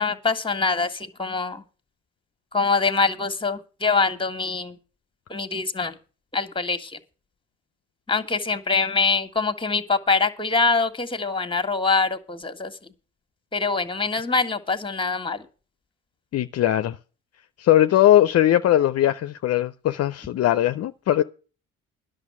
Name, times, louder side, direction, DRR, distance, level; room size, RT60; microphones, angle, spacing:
voice 1, 0.0-1.6 2.5-4.7 5.3-5.9 6.3-6.9 8.1-12.7 13.5-15.4, left 4 dB, 15° left, 1.6 m, -24 dB
voice 2, 16.3-17.0 17.6-21.2, left 12 dB, 55° left, 0.5 m, -19 dB
10.5 x 6.5 x 8.5 m
supercardioid pair, 65°, 30 cm